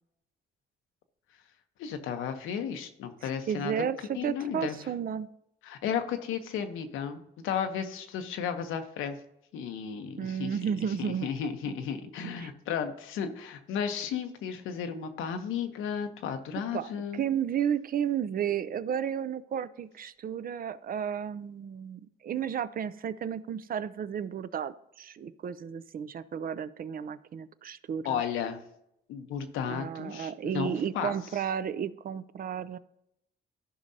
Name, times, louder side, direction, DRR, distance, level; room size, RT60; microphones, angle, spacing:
voice 1, 1.8-3.7 4.1-4.7 5.6-9.2 9.5-10.6 11.0-17.2 28.0-28.6 29.1-31.1, left 7 dB, 90° left, 7 dB, 0.9 m, -34 dB
voice 2, 3.2-5.3 10.2-11.3 11.7-11.8 12.4-12.5 16.7-28.2 29.7-32.8, right 8 dB, 45° right, 15 dB, 0.5 m, -33 dB
14.0 x 5.3 x 2.8 m, 0.80 s
cardioid pair, 90°, 20 cm